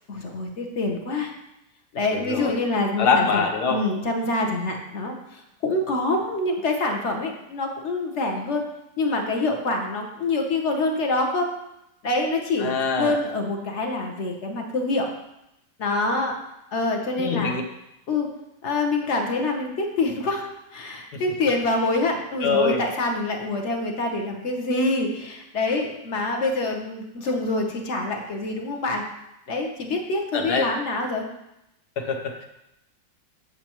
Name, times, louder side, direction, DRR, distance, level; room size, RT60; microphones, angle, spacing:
voice 1, 0.1-1.3 1.9-8.6 9.0-11.5 12.0-15.1 15.8-16.4 16.7-17.6 18.1-18.3 18.6-29.0 29.5-31.3, left 2 dB, 50° left, 2 dB, 1.0 m, -26 dB
voice 2, 3.0-3.8 12.6-13.2 17.2-17.6 22.4-22.8 30.3-30.7 32.0-32.4, left 5 dB, 65° left, 2 dB, 1.4 m, -23 dB
7.7 x 6.8 x 3.0 m, 0.87 s
omnidirectional pair, 2.0 m